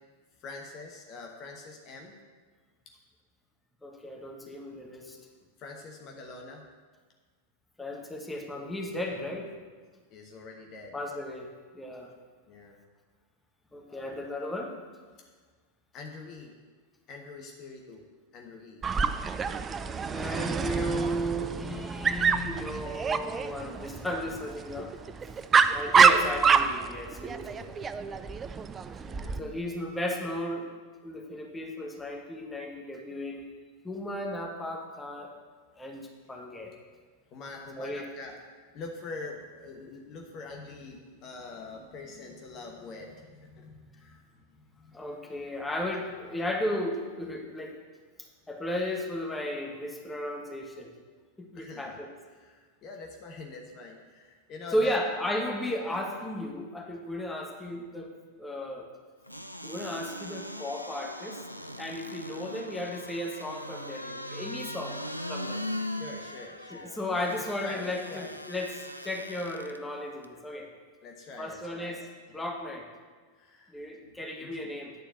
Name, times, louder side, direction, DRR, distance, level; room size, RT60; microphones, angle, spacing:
voice 1, 0.4-2.2 5.6-6.7 10.1-11.0 12.5-12.8 13.9-14.3 15.2-15.3 15.9-16.5 17.1-18.0 18.3-18.8 28.2-28.6 29.1-29.6 37.3-38.4 38.7-45.1 46.1-46.3 51.5-52.0 52.3-55.0 65.8-68.3 71.0-72.0 72.3-72.4 73.3-73.8 74.0-74.7, left 3 dB, 35° left, 1 dB, 1.1 m, -45 dB
voice 2, 3.8-5.2 7.8-9.5 10.9-11.5 11.7-12.1 13.7-14.7 20.1-24.9 25.7-27.8 29.4-30.7 31.0-33.5 33.8-35.3 35.8-36.7 37.8-38.1 44.9-47.7 48.2-50.9 51.4-52.1 54.7-58.1 58.4-58.9 59.6-61.4 61.8-65.0 65.3-65.6 66.7-70.7 71.4-72.1 72.3-72.9 73.7-74.9, left 1 dB, 10° left, 1 dB, 1.2 m, -34 dB
Dog, 18.8-29.4, right 6 dB, 20° right, 0.4 m, -27 dB
sound 1, 59.3-69.8 70.2-70.3, left 1 dB, 90° left, 0.4 m, -40 dB
9.3 x 4.5 x 7.4 m, 1.5 s
figure-of-eight pair, 90°, 0 cm